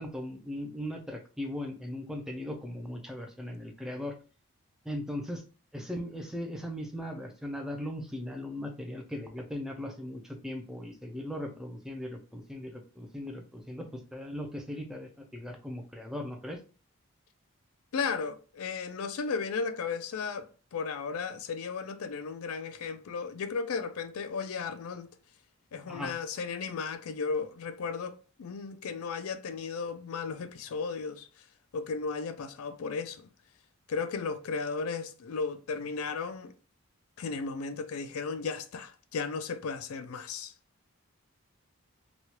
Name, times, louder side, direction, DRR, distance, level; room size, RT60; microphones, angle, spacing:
voice 1, 0.0-4.1 4.9-5.4 5.7-16.6 25.9-26.2, left 1 dB, 5° right, 0.4 m, -38 dB
voice 2, 17.9-25.1 25.7-31.3 31.7-33.3 33.9-36.5 37.2-40.5, left 5 dB, 80° left, 0.4 m, -35 dB
3.0 x 2.3 x 2.9 m
head